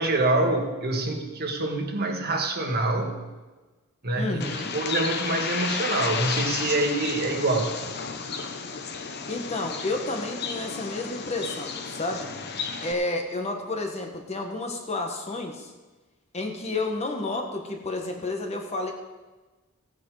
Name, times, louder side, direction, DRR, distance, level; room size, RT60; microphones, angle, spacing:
voice 1, 0.0-3.2 4.0-4.4 4.7-7.8, right 2 dB, 45° right, 3 dB, 1.6 m, -26 dB
voice 2, 4.2-4.7 9.3-12.3 12.8-15.7 16.3-18.9, left 2 dB, 30° left, 3 dB, 1.4 m, -31 dB
Bird, 4.4-12.9, left 5 dB, 50° left, 0.9 m, -32 dB
16.0 x 9.1 x 4.9 m, 1.2 s
head